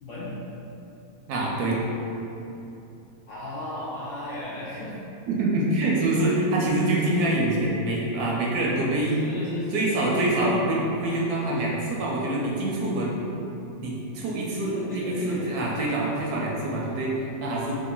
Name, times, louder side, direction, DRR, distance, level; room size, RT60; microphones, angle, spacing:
voice 1, 0.0-0.3 3.3-5.0 7.0-7.3 9.2-9.9 14.7-15.6, left 1 dB, 70° left, -8 dB, 0.7 m, -35 dB
voice 2, 1.3-1.8 5.3-9.2 9.7-13.2 13.8-17.7, right 1 dB, 75° right, -3 dB, 1.1 m, -25 dB
3.0 x 2.5 x 3.9 m, 2.9 s
omnidirectional pair, 1.8 m